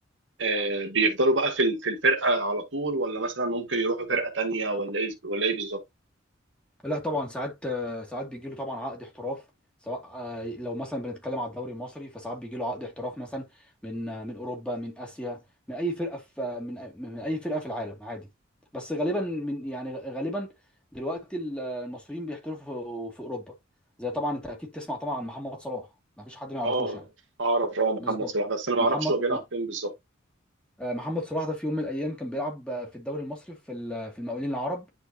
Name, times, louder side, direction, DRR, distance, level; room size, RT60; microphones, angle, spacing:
voice 1, 0.4-5.8 26.6-27.0 27.4-29.9, right 2 dB, 75° right, 2.2 m, -26 dB
voice 2, 6.8-9.4 9.8-13.5 13.8-15.4 15.7-18.3 18.7-20.5 20.9-23.5 24.0-25.9 26.2-27.0 28.0-28.3 28.8-29.4 30.8-34.9, equal, 5° left, 2.6 m, -33 dB
10.5 x 4.6 x 2.9 m
head